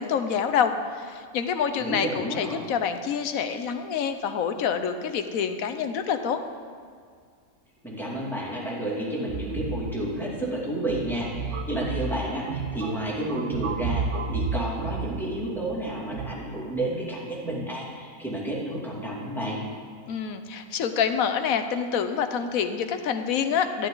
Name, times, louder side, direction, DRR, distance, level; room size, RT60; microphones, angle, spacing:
voice 1, 0.0-6.4 20.1-23.9, left 7 dB, 70° left, 8 dB, 1.1 m, -27 dB
voice 2, 1.8-2.6 7.8-14.1 14.3-19.6, right 1 dB, ahead, -5 dB, 2.4 m, -31 dB
sound 1, 9.3-16.3, right 4 dB, 60° right, 1.0 m, -32 dB
13.0 x 11.0 x 3.9 m, 2.1 s
omnidirectional pair, 1.6 m